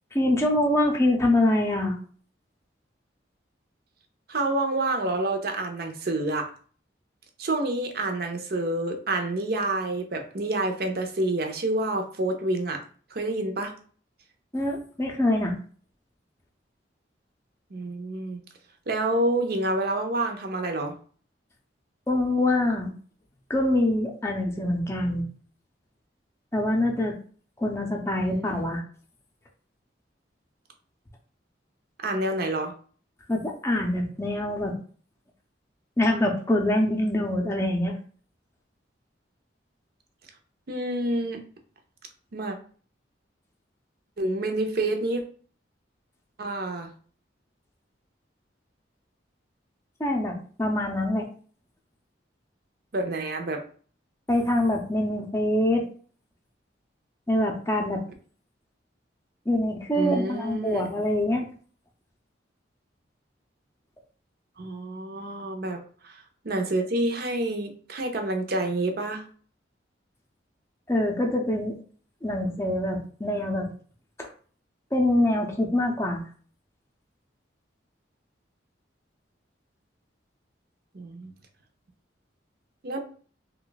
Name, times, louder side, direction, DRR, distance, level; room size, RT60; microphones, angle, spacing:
voice 1, 0.1-2.0 14.5-15.6 22.1-22.9 23.5-25.2 26.5-27.1 27.6-28.8 33.3-34.8 36.0-37.9 50.0-51.3 54.3-55.8 57.3-58.0 59.5-61.5 70.9-71.7 72.2-73.7 74.2-74.3 74.9-76.2, left 1 dB, 15° left, 1 dB, 0.5 m, -24 dB
voice 2, 4.3-6.5 7.4-12.8 13.1-13.7 17.7-18.4 18.9-20.9 28.2-28.7 32.0-32.7 40.7-41.4 42.3-42.6 44.2-45.2 46.4-46.9 52.9-53.6 60.0-60.9 64.6-69.2 80.9-81.3 82.8-83.0, right 2 dB, 55° right, 4 dB, 0.6 m, -28 dB
3.1 x 2.3 x 3.9 m, 0.43 s
head